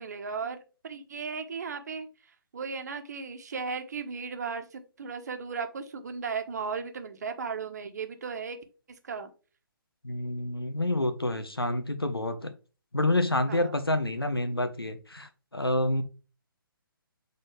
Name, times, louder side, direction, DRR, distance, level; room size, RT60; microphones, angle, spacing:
voice 1, 0.0-2.1 2.5-8.6 9.0-9.3 13.5-13.7, right 5 dB, 45° right, 7 dB, 1.2 m, -36 dB
voice 2, 10.0-12.5 12.9-16.0, left 1 dB, 85° left, 9 dB, 1.2 m, -28 dB
7.6 x 4.1 x 3.3 m, 0.35 s
figure-of-eight pair, 135°, 12 cm